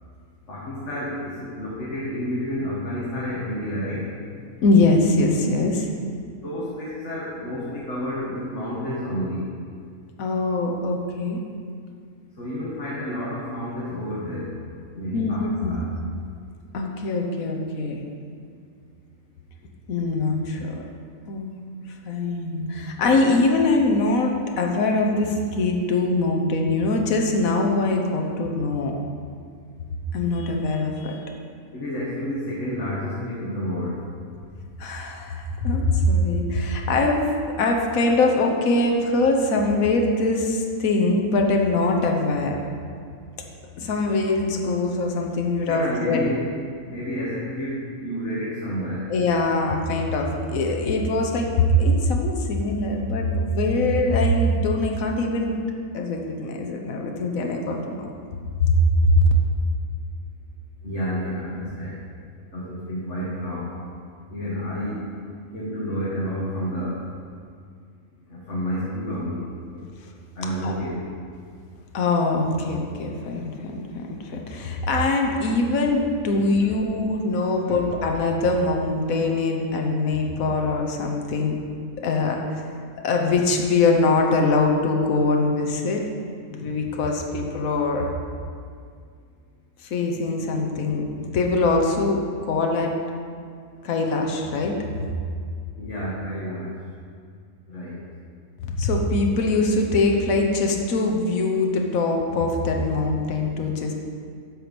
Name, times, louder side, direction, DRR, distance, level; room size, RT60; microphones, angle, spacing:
voice 1, 0.5-4.0 6.4-9.5 12.4-14.5 14.9-15.9 31.7-34.0 45.7-46.5 46.8-49.0 60.8-62.0 62.5-63.7 64.3-65.0 65.5-67.0 68.3-69.9 70.4-71.1 77.7-77.8 95.8-96.7 97.7-98.0, equal, 55° left, -7 dB, 1.8 m, -30 dB
voice 2, 4.6-5.9 10.2-11.4 15.1-15.7 16.7-18.0 19.9-20.8 21.3-21.5 22.0-28.9 30.1-31.2 34.8-37.3 37.6-42.6 43.8-46.2 49.1-55.6 55.9-58.1 58.6-58.8 59.0-59.3 70.6-70.7 71.9-81.6 82.0-82.6 83.0-86.0 86.5-88.1 89.8-93.0 93.8-94.8 98.6-103.9, left 2 dB, 75° left, 1 dB, 1.3 m, -22 dB
13.0 x 4.6 x 5.2 m, 2.2 s
omnidirectional pair, 1.5 m